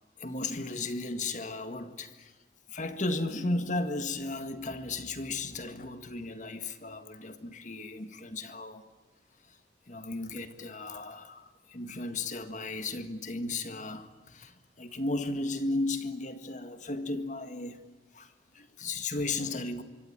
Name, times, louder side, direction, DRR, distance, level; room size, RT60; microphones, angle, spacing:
voice 1, 0.2-2.4 2.7-8.8 9.4-9.6 9.9-17.8 18.1-19.8, left 2 dB, 40° left, 1.8 m, -35 dB
26.0 x 25.0 x 8.8 m
head